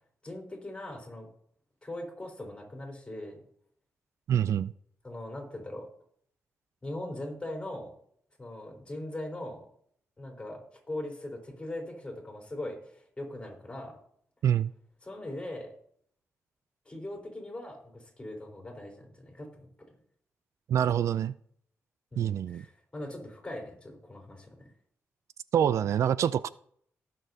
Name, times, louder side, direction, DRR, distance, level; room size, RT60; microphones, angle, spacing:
voice 1, 0.2-1.3 1.8-3.4 5.0-5.9 6.8-7.9 8.4-9.6 10.2-14.0 15.0-15.7 16.9-19.7 22.1-24.6, left 1 dB, 20° left, 0 dB, 3.9 m, -40 dB
voice 2, 4.3-4.7 14.4-14.7 20.7-21.3 22.2-22.6 25.5-26.5, right 9 dB, 75° right, 16 dB, 0.4 m, -26 dB
18.5 x 6.9 x 2.7 m, 0.65 s
cardioid pair, 100°, 5 cm